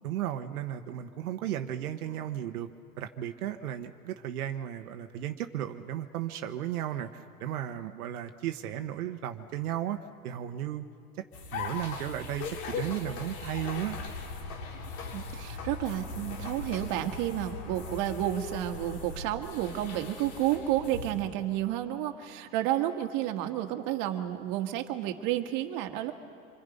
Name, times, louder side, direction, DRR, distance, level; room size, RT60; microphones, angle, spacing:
voice 1, 0.0-2.7 3.0-10.0 10.2-10.9 11.1-11.2 11.5-14.0, right 11 dB, 85° right, 7 dB, 1.2 m, -35 dB
sound 1, 11.3-21.1, left 4 dB, 80° left, 6.9 m, -39 dB
voice 2, 15.1-26.1, right 13 dB, 45° right, 5 dB, 1.8 m, -31 dB
26.5 x 23.5 x 5.4 m, 2.5 s
supercardioid pair, 140°, 43 cm